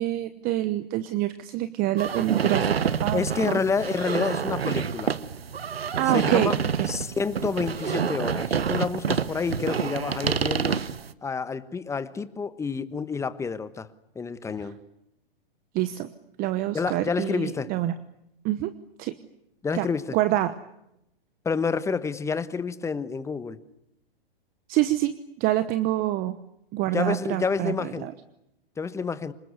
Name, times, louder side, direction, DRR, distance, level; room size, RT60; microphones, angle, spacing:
voice 1, 0.0-3.2 3.5-3.6 6.0-6.9 14.6-14.7 15.7-16.1 16.4-17.9 18.4-18.7 19.0-19.2 19.7-19.9 20.1-20.6 24.7-26.4 26.7-28.1, right 14 dB, 30° right, 13 dB, 1.1 m, -26 dB
sound 1, 2.0-11.1, right 6 dB, 85° right, 1.2 m, -28 dB
voice 2, 3.1-5.1 6.1-6.6 6.9-10.8 11.2-13.9 14.1-14.8 16.7-17.7 19.6-20.2 21.4-23.6 26.9-28.1 28.8-29.3, left 5 dB, 10° left, 14 dB, 1.2 m, -29 dB
26.5 x 20.0 x 9.6 m, 0.84 s
hypercardioid pair, 120°, 29 cm